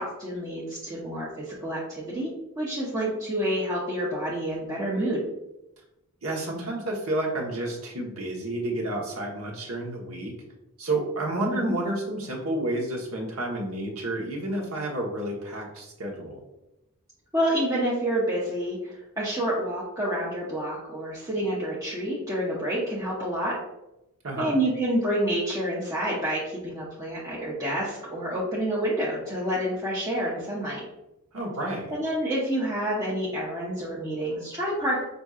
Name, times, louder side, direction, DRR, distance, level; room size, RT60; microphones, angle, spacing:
voice 1, 0.0-5.2 11.6-11.7 17.3-23.6 24.4-30.8 31.9-35.0, right 1 dB, 15° right, -7 dB, 0.7 m, -28 dB
voice 2, 6.2-10.3 10.8-16.4 24.2-24.6 31.3-31.9, right 1 dB, 70° right, 0 dB, 1.0 m, -30 dB
5.9 x 2.6 x 2.4 m, 0.92 s
head